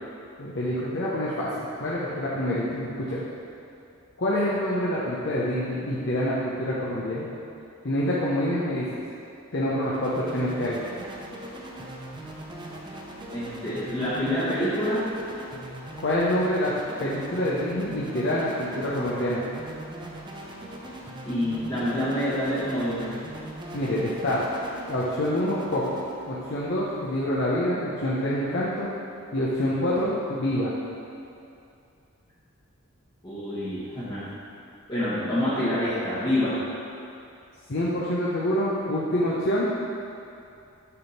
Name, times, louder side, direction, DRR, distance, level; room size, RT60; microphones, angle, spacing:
voice 1, 0.4-3.2 4.2-7.3 7.8-9.0 9.5-10.8 16.0-16.7 17.0-19.4 23.7-24.5 24.9-28.9 29.3-30.7 37.7-39.7, left 1 dB, 55° left, -7 dB, 0.8 m, -26 dB
sound 1, 9.8-27.6, right 1 dB, 20° right, 0.6 m, -40 dB
voice 2, 13.3-15.0 21.2-23.1 33.2-34.2 34.9-36.6, left 1 dB, 20° left, -12 dB, 1.2 m, -27 dB
6.7 x 3.6 x 5.7 m, 2.6 s
head